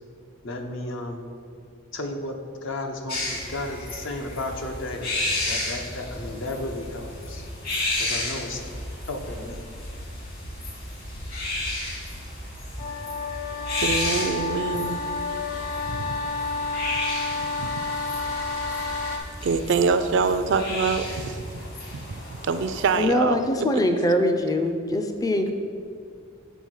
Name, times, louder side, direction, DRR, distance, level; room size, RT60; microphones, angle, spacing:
voice 1, 0.4-1.2 1.9-7.5 8.0-8.7 9.1-9.7, left 2 dB, 65° left, 3 dB, 0.8 m, -33 dB
sound 1, 3.1-23.0, left 2 dB, 45° left, 1.8 m, -33 dB
sound 2, 12.8-19.2, left 3 dB, 90° left, 1.0 m, -30 dB
voice 2, 13.8-15.0 15.9-16.0 17.6-17.7 19.4-21.5 21.9-23.7, right 4 dB, 60° right, 11 dB, 0.4 m, -25 dB
voice 3, 23.0-25.5, left 1 dB, 15° left, 6 dB, 0.4 m, -23 dB
7.0 x 3.7 x 6.3 m, 2.2 s
head